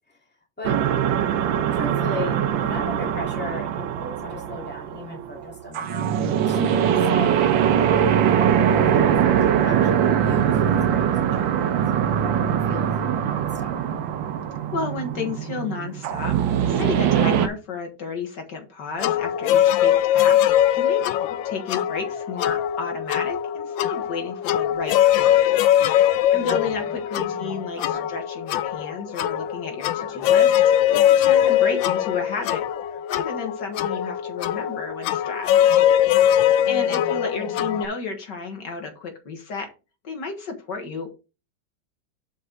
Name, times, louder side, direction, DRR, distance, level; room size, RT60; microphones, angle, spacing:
sound 1, 0.6-17.5, right 9 dB, 85° right, 1.6 m, -22 dB
voice 1, 1.7-6.6 7.1-7.5 8.3-11.8 12.2-13.8 26.3-26.8 27.2-28.1 36.6-37.9, left 2 dB, 5° left, 2.4 m, -37 dB
voice 2, 6.6-6.9 14.7-16.4 16.6-21.0 21.4-25.6 25.9-32.6 33.1-35.5 36.7-39.7 40.0-41.1, left 4 dB, 65° left, 2.1 m, -32 dB
sound 2, 19.0-37.9, left 11 dB, 85° left, 1.3 m, -21 dB
7.8 x 5.4 x 3.9 m
omnidirectional pair, 2.0 m